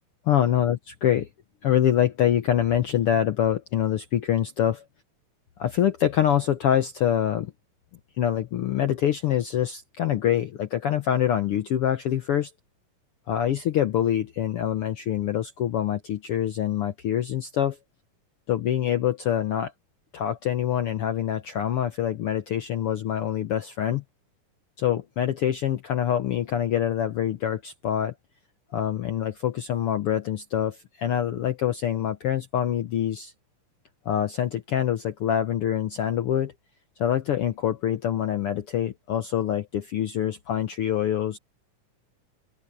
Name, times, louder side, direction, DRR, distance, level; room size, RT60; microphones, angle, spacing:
voice 1, 0.3-1.3 1.6-4.8 5.6-7.5 8.2-12.5 13.3-17.8 18.5-19.7 20.1-24.0 24.8-28.1 28.7-33.3 34.0-36.5 37.0-41.4, left 10 dB, 75° left, 1.3 m, -25 dB
open air
omnidirectional pair, 3.7 m